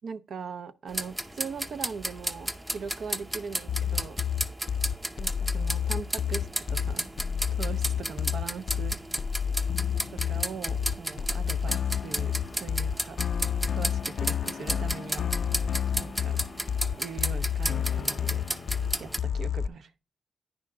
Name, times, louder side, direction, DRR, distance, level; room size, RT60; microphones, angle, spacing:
voice 1, 0.0-4.2 5.2-7.1 7.5-9.0 10.1-13.2 13.7-15.3 16.0-16.4 17.0-18.4 19.0-19.9, right 5 dB, 65° right, 0.6 m, -40 dB
sound 1, 0.9-19.2, right 1 dB, 15° right, 0.6 m, -34 dB
sound 2, 3.7-19.7, left 8 dB, 60° left, 0.3 m, -30 dB
9.7 x 6.2 x 3.7 m
cardioid pair, 85°, 0 cm